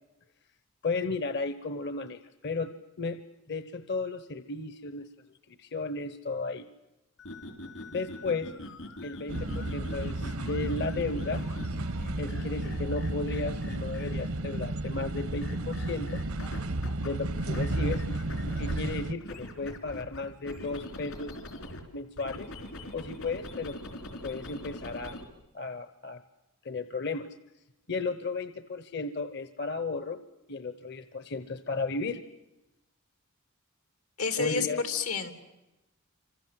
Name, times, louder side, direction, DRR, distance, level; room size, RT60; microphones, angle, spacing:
voice 1, 0.8-2.7 3.0-3.2 3.5-5.1 5.5-6.7 7.9-8.5 9.0-11.4 12.2-16.2 17.0-18.0 18.6-21.4 21.9-22.5 22.9-23.8 24.2-25.2 25.5-26.2 26.6-27.3 27.9-30.2 30.5-32.2 34.4-34.8, left 3 dB, 55° left, 12 dB, 1.0 m, -34 dB
sound 1, 7.2-14.4 15.4-17.1 17.4-21.8 22.2-25.2, left 1 dB, 70° left, 4.1 m, -43 dB
sound 2, 9.3-19.1, right 2 dB, 80° right, 1.0 m, -33 dB
voice 2, 34.2-35.3, left 5 dB, 90° left, 8 dB, 3.1 m, -29 dB
28.5 x 26.0 x 7.7 m, 0.98 s
head